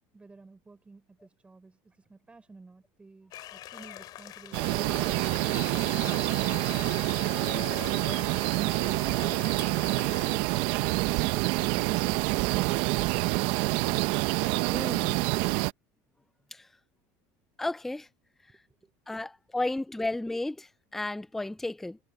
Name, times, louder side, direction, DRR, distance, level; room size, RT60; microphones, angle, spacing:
voice 1, 0.1-5.3 18.7-18.9, right 3 dB, 10° right, 5.7 m, -52 dB
sound 1, 3.3-10.4, left 14 dB, 45° left, 3.0 m, -42 dB
sound 2, 4.5-15.7, right 21 dB, 60° right, 0.7 m, -27 dB
voice 2, 14.7-15.2 16.5-16.6 17.6-18.1 19.1-22.0, left 2 dB, 5° left, 0.3 m, -33 dB
supercardioid pair, 140°, 10 cm